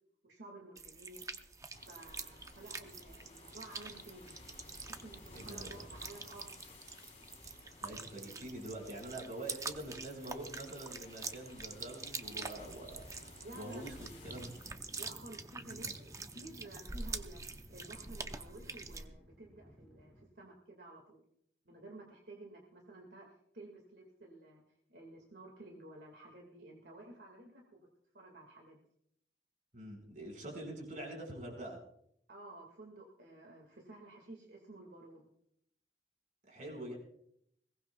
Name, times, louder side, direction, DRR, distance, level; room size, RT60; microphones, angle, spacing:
voice 1, 0.3-1.2 1.8-4.5 4.8-6.8 13.4-14.0 15.0-21.2 21.7-24.6 24.9-27.9 28.1-28.8 32.3-35.3, right 2 dB, 75° right, 1 dB, 2.1 m, -53 dB
sound 1, 0.8-19.1, right 4 dB, 20° right, 0.7 m, -46 dB
sound 2, 1.7-14.7, left 2 dB, 35° left, 3.6 m, -56 dB
voice 2, 5.3-5.8 7.8-13.9 14.2-14.6 15.6-15.9 29.7-31.8 36.5-36.9, right 1 dB, 45° right, 0 dB, 5.3 m, -45 dB
sound 3, 14.0-20.3, equal, 5° left, 1.1 m, -56 dB
21.5 x 18.5 x 2.3 m, 0.73 s
head